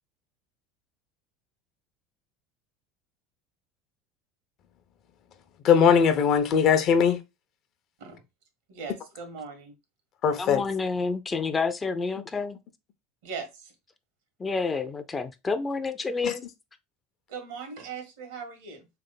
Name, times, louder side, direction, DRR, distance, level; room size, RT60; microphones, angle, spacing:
voice 1, 5.6-7.2 10.2-10.6 16.2-16.3, left 7 dB, 55° left, 0.8 m, -20 dB
voice 2, 8.7-9.8 13.2-13.7 17.3-18.9, right 5 dB, 80° right, 1.5 m, -39 dB
voice 3, 10.4-12.6 14.4-16.4, left 4 dB, 20° left, 0.6 m, -29 dB
3.4 x 3.3 x 3.9 m
hypercardioid pair, 95°, 0 cm